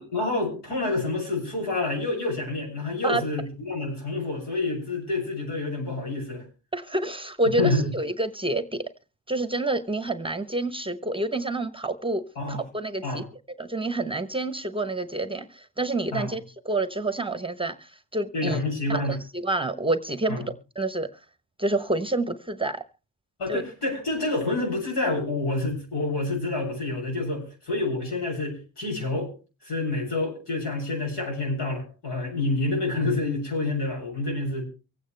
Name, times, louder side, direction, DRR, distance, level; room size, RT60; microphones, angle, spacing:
voice 1, 0.0-6.4 7.6-7.9 12.4-12.6 13.0-13.2 16.1-16.3 18.3-19.2 20.3-20.4 23.4-29.3 29.6-34.6, left 2 dB, 75° left, 1 dB, 7.6 m, -28 dB
voice 2, 6.7-8.9 9.3-13.2 13.6-18.6 18.9-20.5 20.8-21.2 21.6-22.8 23.5-23.6, right 2 dB, 15° right, 11 dB, 0.9 m, -28 dB
24.5 x 8.8 x 3.3 m, 0.32 s
cardioid pair, 85°, 41 cm